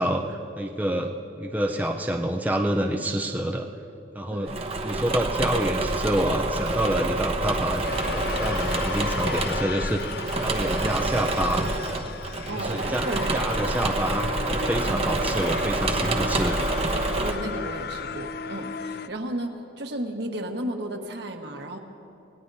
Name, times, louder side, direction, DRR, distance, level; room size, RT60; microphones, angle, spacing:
voice 1, 0.0-3.7 4.1-4.5 4.8-7.8 8.1-11.7 12.6-13.0 13.3-16.6, right 1 dB, 10° right, 0 dB, 0.6 m, -27 dB
voice 2, 4.3-4.6 12.5-13.9 14.8-15.2 17.2-21.8, right 1 dB, 65° right, 3 dB, 1.4 m, -34 dB
Engine / Mechanisms, 4.5-17.3, right 2 dB, 30° right, 1.0 m, -27 dB
sound 1, 7.8-19.1, left 6 dB, 55° left, 0.4 m, -35 dB
27.5 x 18.0 x 2.7 m, 2.8 s
head